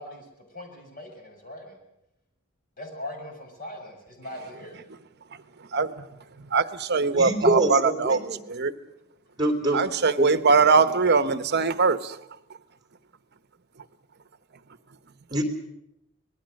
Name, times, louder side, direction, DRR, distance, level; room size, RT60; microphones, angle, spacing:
voice 1, 0.0-1.8 2.8-4.8, left 1 dB, 45° left, 6.9 m, -40 dB
voice 2, 6.5-8.2 8.5-8.7 9.7-12.2, right 4 dB, 55° right, 1.0 m, -21 dB
voice 3, 7.1-8.4 9.4-9.8 10.2-10.3 15.3-15.4, right 1 dB, 20° right, 3.5 m, -24 dB
26.0 x 19.5 x 6.5 m
head